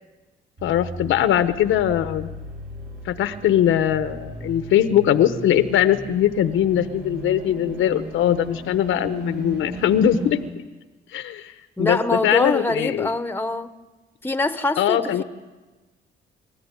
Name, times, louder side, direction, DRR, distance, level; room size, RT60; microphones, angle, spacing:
voice 1, 0.6-2.3 3.0-10.4 11.1-11.5 11.8-13.1 14.8-15.2, left 10 dB, 80° left, 11 dB, 1.1 m, -21 dB
sound 1, 0.6-10.4, right 1 dB, 60° right, 7.4 m, -37 dB
voice 2, 11.8-13.7 14.2-15.2, left 2 dB, 10° left, 11 dB, 1.2 m, -24 dB
27.5 x 14.0 x 9.9 m, 1.2 s
cardioid pair, 90°, 20 cm